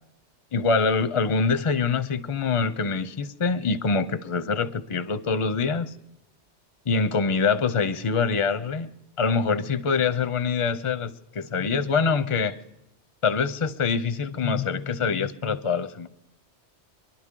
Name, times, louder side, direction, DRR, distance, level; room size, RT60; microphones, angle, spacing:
voice 1, 0.5-5.9 6.9-8.9 9.2-12.6 13.2-16.1, left 5 dB, 40° left, 0.4 m, -25 dB
24.5 x 11.5 x 3.7 m
omnidirectional pair, 1.2 m